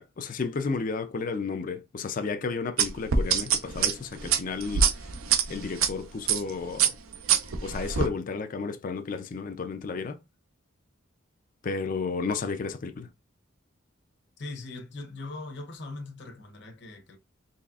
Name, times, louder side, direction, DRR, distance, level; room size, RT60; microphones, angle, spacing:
voice 1, 0.0-5.1 5.5-6.9 7.6-10.2 11.6-13.1, left 4 dB, 40° left, 0.4 m, -32 dB
sound 1, 2.8-5.9 6.3-6.5 6.8-8.1, right 7 dB, 85° right, 0.6 m, -24 dB
voice 2, 14.4-17.2, left 2 dB, 55° left, 0.8 m, -40 dB
4.0 x 3.2 x 2.4 m
head